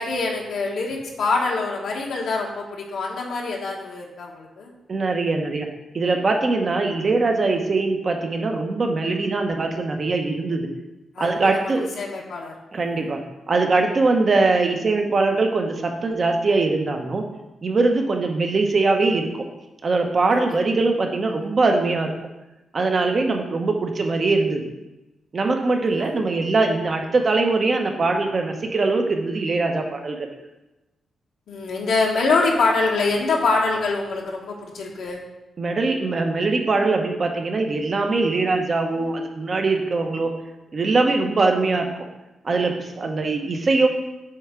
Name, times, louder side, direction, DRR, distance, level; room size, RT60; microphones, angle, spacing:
voice 1, 0.0-4.7 11.1-12.5 20.3-20.5 21.3-21.5 25.9-26.1 31.5-35.2, left 3 dB, 80° left, -2 dB, 1.2 m, -25 dB
voice 2, 4.9-5.7 5.9-10.7 11.2-11.9 12.7-13.2 13.5-17.2 17.6-19.4 19.8-22.1 22.7-24.6 25.3-30.2 35.6-40.3 40.7-41.9 42.4-43.9, right 3 dB, 40° right, 3 dB, 0.9 m, -22 dB
7.8 x 3.5 x 4.9 m, 0.99 s
wide cardioid pair, 125°, 0 cm